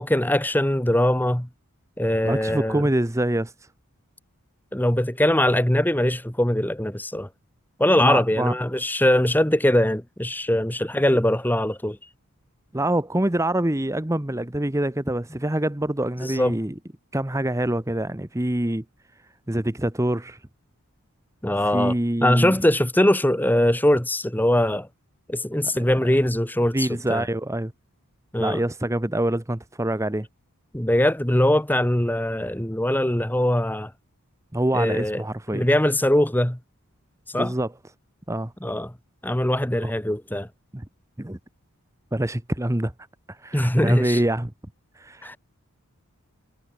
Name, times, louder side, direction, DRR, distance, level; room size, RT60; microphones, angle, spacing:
voice 1, 0.0-1.5 2.0-2.8 4.7-7.3 7.8-12.0 16.2-16.6 21.4-21.9 22.2-24.9 25.3-27.3 28.3-28.6 30.7-33.9 34.7-35.2 35.5-36.6 37.3-37.5 38.6-38.9 39.2-40.5 43.5-44.2 45.2-45.4, left 1 dB, 10° left, 1.3 m, -21 dB
voice 2, 2.2-3.5 8.0-8.5 12.7-16.7 17.1-18.8 19.5-20.4 21.6-22.6 25.7-25.8 26.7-27.7 28.4-30.3 34.5-35.7 37.3-37.7 38.3-38.5 39.8-39.9 40.7-40.8 41.2-41.4 42.1-42.9 43.3-44.5 45.0-45.4, right 1 dB, 15° right, 0.9 m, -25 dB
head